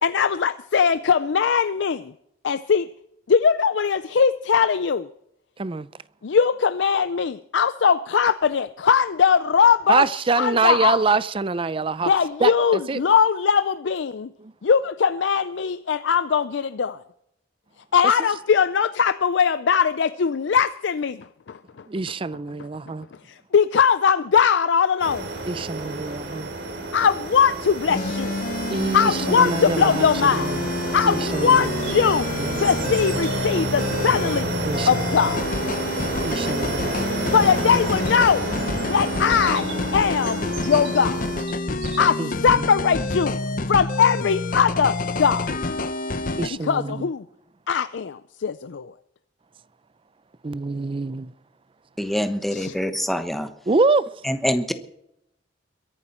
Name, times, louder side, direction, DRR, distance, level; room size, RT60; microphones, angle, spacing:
voice 1, 0.0-2.1 2.4-2.9 3.3-5.1 6.2-10.0 10.4-11.0 12.1-14.3 14.6-17.0 17.9-21.6 23.3-25.3 26.9-28.3 28.9-30.6 30.9-32.3 32.6-34.6 34.9-35.4 37.3-38.5 38.8-39.7 39.9-41.2 42.0-43.4 43.7-45.6 46.5-47.3 47.7-48.9 52.5-52.7, left 6 dB, 75° left, 0.5 m, -20 dB
voice 2, 9.9-12.1 12.4-13.0 14.4-14.5 21.9-23.1 25.5-26.5 28.7-30.7 31.0-31.8 32.4-32.6 33.1-33.2 34.7-35.0 36.2-37.3 42.2-42.6 46.4-47.1 50.4-51.3 53.7-54.1, right 4 dB, 30° right, 0.5 m, -25 dB
sound 1, 25.0-41.4, right 2 dB, 70° right, 3.1 m, -30 dB
sound 2, 27.9-46.5, left 2 dB, 50° left, 0.8 m, -28 dB
Bird vocalization bird call bird song, 30.4-43.1, right 6 dB, 85° right, 3.8 m, -44 dB
voice 3, 52.0-53.5 54.2-54.7, equal, ahead, 1.1 m, -25 dB
22.5 x 11.0 x 4.4 m
head